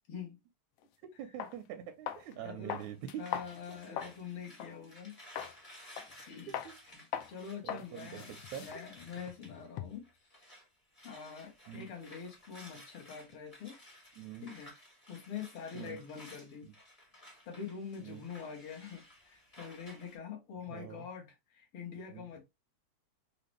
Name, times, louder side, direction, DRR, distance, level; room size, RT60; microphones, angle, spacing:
voice 1, 0.1-0.4 2.3-2.8 3.2-5.2 5.5-6.6 7.3-10.1 11.0-13.8 14.4-14.7 15.1-16.7 17.5-22.4, left 7 dB, 60° left, 1.7 m, -45 dB
sound 1, 0.8-0.9 1.4-1.6 2.1-2.3 2.7-4.2 4.6-4.7 5.4-5.6 6.0-6.2 6.5-6.7 7.1-7.3 7.7-7.9 8.2-10.1, left 10 dB, 85° left, 1.3 m, -41 dB
voice 2, 1.2-3.3 6.5-6.7 7.6-8.2 8.5-8.7 11.7-11.9 14.2-14.5 15.7-16.0 16.6-16.7 18.0-18.2 20.7-21.1 22.1-22.3, right 10 dB, 80° right, 1.9 m, -44 dB
sound 2, 2.7-10.7 10.9-20.2, left 1 dB, 20° left, 1.0 m, -56 dB
5.1 x 2.4 x 3.1 m
omnidirectional pair, 3.4 m